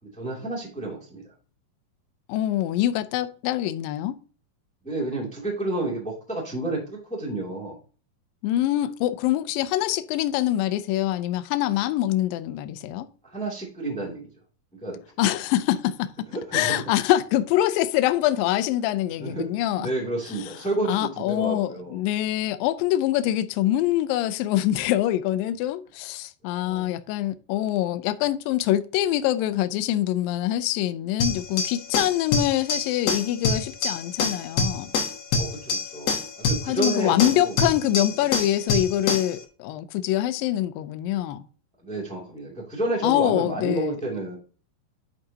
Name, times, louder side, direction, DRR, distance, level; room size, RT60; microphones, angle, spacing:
voice 1, 0.0-1.3 4.8-7.8 13.2-14.3 14.8-15.0 16.3-16.8 19.2-22.0 26.5-26.9 35.3-37.5 38.2-38.3 41.8-44.4, right 2 dB, 5° left, 1.4 m, -30 dB
voice 2, 2.3-4.2 8.4-13.1 15.2-16.3 16.5-19.9 20.9-34.9 36.7-41.5 43.0-44.0, left 13 dB, 90° left, 2.0 m, -24 dB
sound 1, 31.2-39.4, left 4 dB, 70° left, 1.6 m, -26 dB
10.5 x 4.9 x 2.8 m
omnidirectional pair, 4.7 m